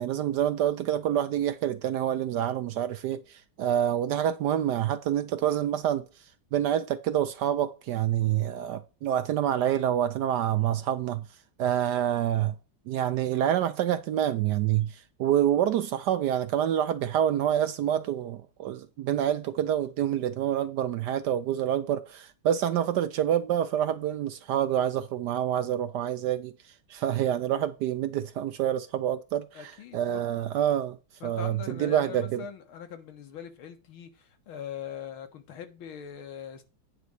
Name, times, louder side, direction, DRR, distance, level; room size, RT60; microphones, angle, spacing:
voice 1, 0.0-6.0 6.5-11.2 11.6-12.5 12.9-26.5 26.9-31.0 31.2-32.5, right 10 dB, 70° right, 1.0 m, -27 dB
voice 2, 29.5-30.4 31.2-36.6, left 8 dB, 80° left, 2.2 m, -42 dB
9.3 x 4.1 x 6.3 m
omnidirectional pair, 2.2 m